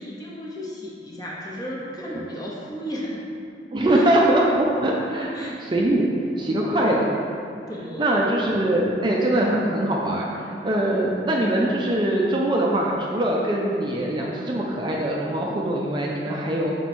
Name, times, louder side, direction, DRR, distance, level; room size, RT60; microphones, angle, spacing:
voice 1, 0.0-3.2 3.9-4.1 5.2-5.5 7.7-8.3, equal, 20° left, -5 dB, 0.9 m, -34 dB
voice 2, 3.7-6.1 6.4-7.0 8.0-16.7, right 1 dB, 25° right, -3 dB, 0.5 m, -22 dB
6.1 x 4.5 x 4.2 m, 2.5 s
head